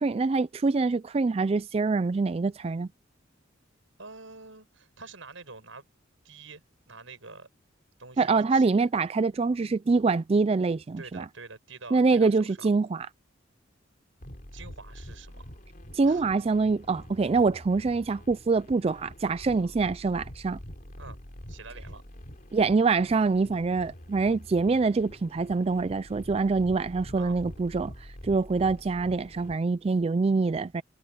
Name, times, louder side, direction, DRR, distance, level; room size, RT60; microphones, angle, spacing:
voice 1, 0.0-2.9 8.2-11.3 11.9-13.1 15.9-20.6 22.5-30.8, right 4 dB, 30° right, 0.3 m, -25 dB
voice 2, 4.0-5.9 6.2-7.5 8.0-8.8 11.0-12.7 14.5-15.6 16.0-16.3 19.6-19.7 21.0-21.2 21.5-22.0 27.1-27.4, right 4 dB, 85° right, 6.5 m, -46 dB
sound 1, 14.2-29.6, equal, 45° left, 3.3 m, -46 dB
head